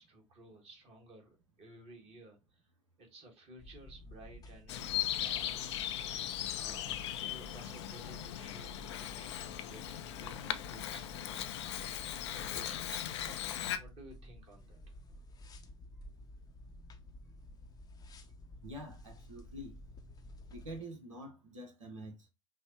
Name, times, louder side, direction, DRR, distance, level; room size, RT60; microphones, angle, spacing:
voice 1, 0.0-2.6 3.0-5.7 6.5-11.5 12.2-14.8, right 2 dB, 40° right, 1.5 m, -55 dB
sound 1, 3.6-20.8, left 1 dB, 25° left, 0.6 m, -52 dB
Bird vocalization bird call bird song, 4.7-13.8, left 11 dB, 60° left, 0.4 m, -38 dB
voice 2, 18.6-19.8 20.5-22.3, right 1 dB, 75° right, 0.9 m, -46 dB
5.5 x 2.0 x 2.9 m
figure-of-eight pair, 70°, 16 cm